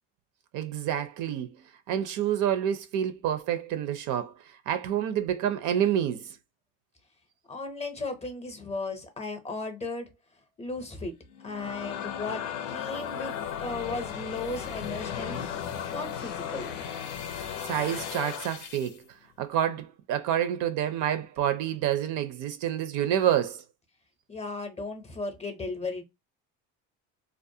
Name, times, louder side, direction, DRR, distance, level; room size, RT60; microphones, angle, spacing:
voice 1, 0.5-1.5 1.9-4.3 4.7-6.3 17.6-19.0 19.4-23.6, right 10 dB, 60° right, 0.5 m, -28 dB
voice 2, 7.5-10.1 10.6-11.2 11.4-13.3 13.6-15.5 15.9-16.8 24.3-26.0, left 3 dB, 20° left, 0.6 m, -35 dB
sound 1, 11.3-19.0, left 8 dB, 90° left, 0.6 m, -36 dB
2.4 x 2.1 x 2.6 m
cardioid pair, 115°, 36 cm